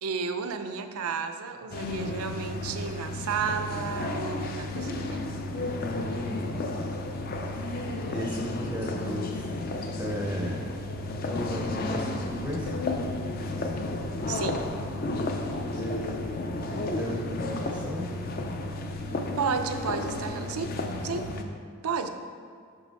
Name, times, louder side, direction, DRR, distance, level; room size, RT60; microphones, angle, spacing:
voice 1, 0.0-5.2 14.3-14.7 19.4-20.7 21.0-21.2 21.8-22.1, right 5 dB, 80° right, 8 dB, 0.5 m, -32 dB
sound 1, 1.7-21.4, left 2 dB, 40° left, 0.4 m, -32 dB
voice 2, 5.8-6.5 7.4-7.7 8.0-9.5 10.0-10.8 11.2-12.7 15.8-16.2 16.6-18.1 18.4-18.5, left 1 dB, 5° right, -2 dB, 0.5 m, -35 dB
5.9 x 5.3 x 4.5 m, 2.2 s
head